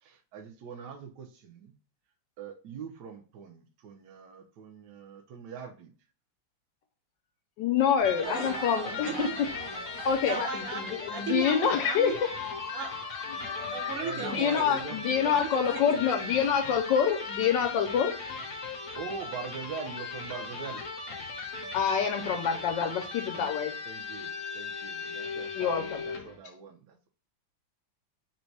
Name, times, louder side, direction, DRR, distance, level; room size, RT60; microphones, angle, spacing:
voice 1, 0.0-1.7 2.4-5.9 8.9-9.4 14.0-15.1 19.0-20.9 23.9-27.1, right 6 dB, 65° right, 1.2 m, -42 dB
voice 2, 7.6-9.3 10.0-18.1 18.8-18.9 21.7-23.8 25.5-26.0, left 7 dB, 75° left, 1.3 m, -27 dB
Electric guitar, 8.0-26.4, left 4 dB, 50° left, 1.0 m, -38 dB
sound 1, 8.2-14.5 15.1-15.2 16.0-16.1, right 4 dB, 85° right, 1.7 m, -44 dB
voice 3, 10.3-12.2 12.7-12.9 13.7-14.7 15.2-16.2, right 5 dB, 45° right, 0.8 m, -36 dB
4.0 x 2.2 x 4.5 m
omnidirectional pair, 2.1 m